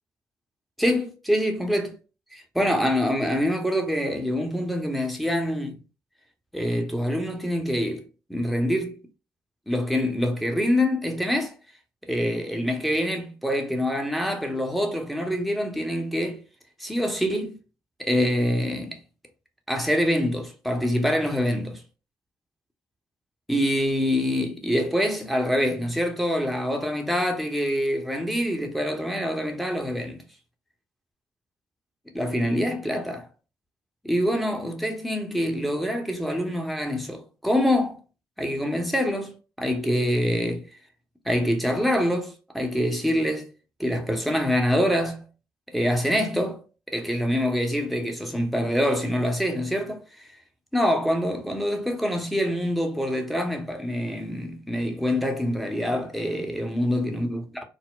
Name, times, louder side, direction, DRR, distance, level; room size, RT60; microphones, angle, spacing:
voice 1, 0.8-1.9 2.3-5.8 6.5-9.0 9.7-11.5 12.1-16.4 16.8-17.6 18.0-19.0 19.7-21.8 23.5-30.2 32.1-33.3 34.0-38.0 38.4-40.6 41.2-43.5 43.8-45.2 45.7-46.6 46.9-50.0 50.7-57.6, equal, ahead, 0.9 m, -25 dB
4.2 x 2.0 x 2.3 m
hypercardioid pair, 45°, 9 cm